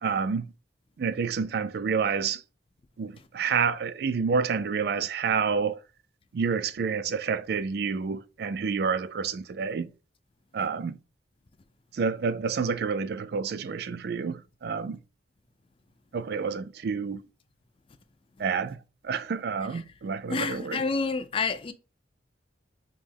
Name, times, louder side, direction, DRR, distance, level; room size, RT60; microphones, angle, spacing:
voice 1, 0.0-0.5 1.0-2.4 3.0-5.8 6.3-9.9 10.5-11.0 11.9-15.0 16.1-17.2 18.4-18.8 19.0-20.9, right 5 dB, 60° right, 0.3 m, -29 dB
voice 2, 20.3-21.7, left 4 dB, 30° left, 0.3 m, -28 dB
5.2 x 2.2 x 3.3 m
head